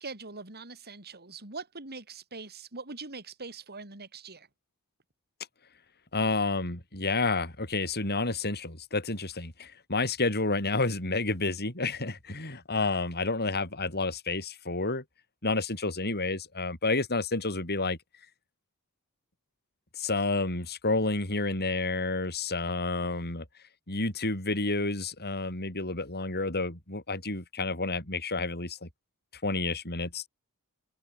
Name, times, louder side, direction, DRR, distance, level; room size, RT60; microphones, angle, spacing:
voice 1, 0.0-4.5, right 4 dB, 45° right, 5.6 m, -42 dB
voice 2, 6.1-15.0 15.4-18.0 20.0-23.4 23.9-28.9 29.4-30.3, left 3 dB, 45° left, 7.4 m, -30 dB
open air
head